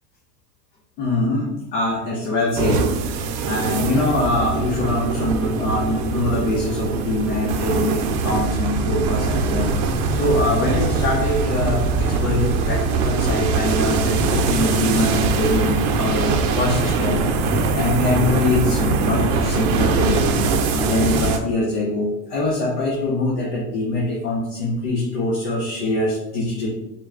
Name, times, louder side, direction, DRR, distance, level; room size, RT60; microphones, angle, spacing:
voice 1, 1.0-20.4 20.7-26.7, left 2 dB, 75° left, -4 dB, 1.0 m, -23 dB
sound 1, 2.5-21.4, right 4 dB, 60° right, 0.6 m, -22 dB
3.8 x 2.2 x 3.6 m, 0.93 s
supercardioid pair, 155°, 47 cm